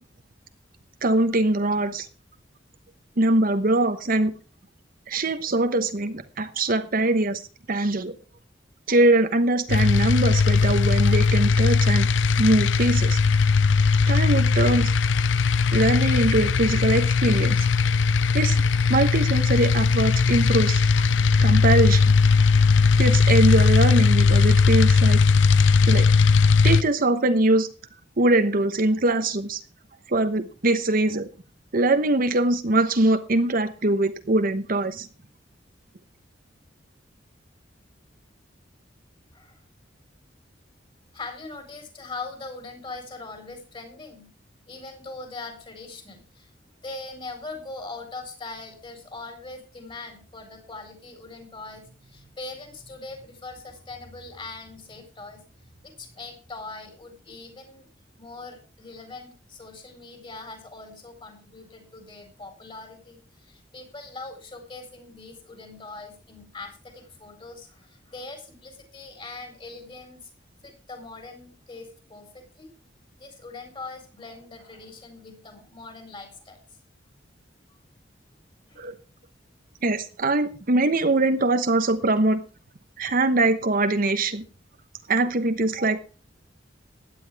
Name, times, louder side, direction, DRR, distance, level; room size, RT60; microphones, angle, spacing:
voice 1, 1.0-2.1 3.2-4.3 5.1-7.4 7.7-8.1 8.9-12.1 12.4-13.2 14.1-14.9 15.7-17.7 18.3-18.6 18.9-21.1 21.4-22.0 23.0-25.2 25.9-26.1 26.6-27.7 28.2-29.6 30.1-31.3 31.7-35.1 78.8-78.9 79.8-82.4 83.0-84.5 85.1-86.0, right 2 dB, 50° right, 9 dB, 1.1 m, -22 dB
sound 1, 9.7-26.8, left 4 dB, 75° left, 0.6 m, -19 dB
voice 2, 39.3-39.6 41.1-44.3 44.7-46.5 46.8-57.9 58.2-70.3 70.6-72.7 73.2-76.6 77.7-77.8 78.7-78.9, left 3 dB, 30° left, 6 dB, 4.3 m, -41 dB
16.0 x 10.5 x 3.5 m, 0.36 s
head